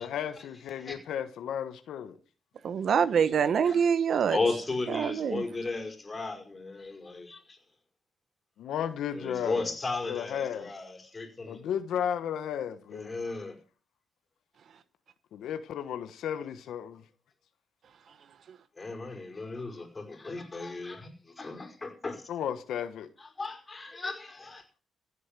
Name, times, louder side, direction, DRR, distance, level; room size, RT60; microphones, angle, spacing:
voice 1, 0.0-2.2 8.6-9.7 10.0-10.7 11.5-13.2 15.3-17.0 22.3-23.1, left 9 dB, 80° left, 1.3 m, -34 dB
voice 2, 2.6-4.4 4.9-5.4 18.5-18.6, right 7 dB, 60° right, 1.1 m, -25 dB
voice 3, 4.3-7.6 9.1-11.6 12.9-13.5 18.8-22.3 23.2-24.6, left 3 dB, 25° left, 5.1 m, -35 dB
15.5 x 8.3 x 6.8 m
cardioid pair, 85°, 0 cm